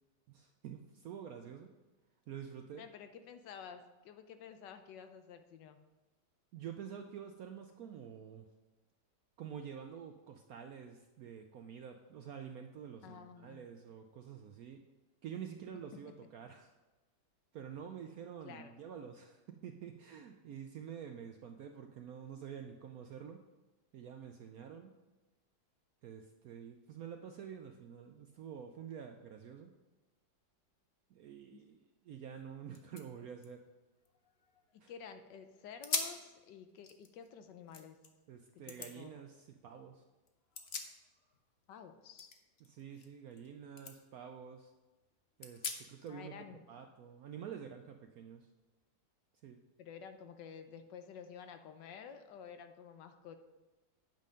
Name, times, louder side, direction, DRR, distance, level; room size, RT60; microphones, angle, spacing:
voice 1, 0.3-1.7 2.3-2.9 6.5-8.5 9.4-14.8 15.2-16.7 17.5-23.4 23.9-24.9 26.0-29.7 31.1-33.6 34.8-34.9 38.3-40.0 42.6-44.7 45.4-46.3 46.7-48.5 49.4-49.6, right 8 dB, 75° right, 5 dB, 0.8 m, -48 dB
voice 2, 2.8-5.8 13.0-13.7 18.4-18.7 31.5-31.6 34.9-38.0 38.5-39.1 41.7-42.3 46.1-46.6 49.8-53.4, left 7 dB, 75° left, 8 dB, 1.3 m, -51 dB
sound 1, 32.3-32.4 32.7-34.9 35.3-35.4 35.8-36.3 36.7-38.1 38.7-38.9 40.3-41.4 41.7-43.5 43.8-43.9 44.4-44.5 45.4-46.1, left 5 dB, 50° left, 0.7 m, -43 dB
9.2 x 5.5 x 5.1 m, 1.1 s
omnidirectional pair, 2.0 m